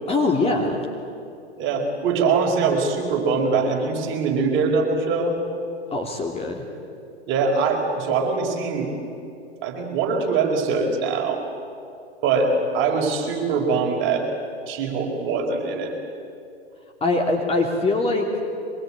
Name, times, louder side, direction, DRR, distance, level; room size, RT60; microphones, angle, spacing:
voice 1, 0.1-0.8 5.9-6.6 17.0-18.3, left 2 dB, 15° left, 1 dB, 2.9 m, -22 dB
voice 2, 1.6-5.4 7.3-8.9 9.6-11.4 12.2-14.3 14.7-16.0, right 4 dB, 35° right, 1 dB, 5.0 m, -22 dB
24.0 x 21.5 x 8.9 m, 2.5 s
hypercardioid pair, 115°, 34 cm